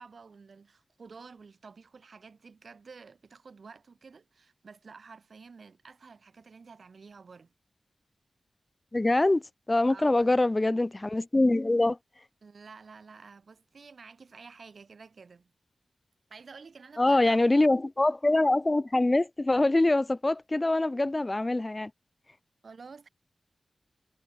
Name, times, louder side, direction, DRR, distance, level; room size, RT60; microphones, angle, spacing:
voice 1, 0.0-7.5 9.9-10.5 12.4-15.5 16.3-17.7 22.6-23.1, right 5 dB, 65° right, 8.0 m, -50 dB
voice 2, 8.9-9.4 9.7-12.0 17.0-21.9, left 2 dB, 25° left, 1.2 m, -24 dB
wide cardioid pair, 90°, 0 cm